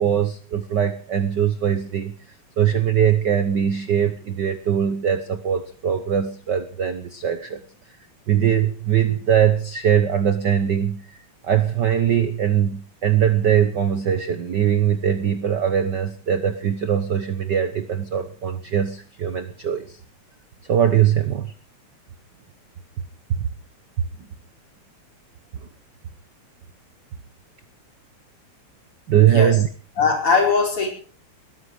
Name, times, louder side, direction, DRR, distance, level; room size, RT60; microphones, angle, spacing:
voice 1, 0.0-2.1 2.6-7.6 8.3-11.2 11.4-19.9 20.7-21.5 23.4-23.5 29.1-29.7, right 9 dB, 80° right, 11 dB, 0.9 m, -21 dB
voice 2, 30.0-30.9, left 4 dB, 45° left, 2 dB, 5.4 m, -20 dB
19.5 x 13.0 x 4.9 m, 0.41 s
omnidirectional pair, 3.4 m